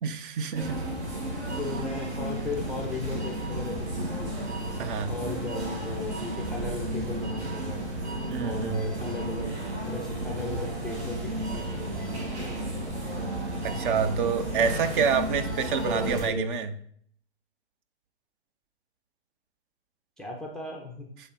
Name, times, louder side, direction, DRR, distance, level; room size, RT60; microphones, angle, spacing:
voice 1, 0.0-0.8 4.8-5.1 8.3-8.9 13.6-16.7, right 6 dB, 50° right, 11 dB, 0.7 m, -27 dB
sound 1, 0.5-16.3, right 1 dB, 75° right, 1.6 m, -33 dB
voice 2, 1.6-4.4 5.1-7.9 8.4-12.7 14.6-14.7 15.8-16.5 20.2-21.1, left 2 dB, ahead, 0 dB, 0.4 m, -36 dB
7.6 x 3.4 x 4.0 m, 0.62 s
figure-of-eight pair, 115°, 34 cm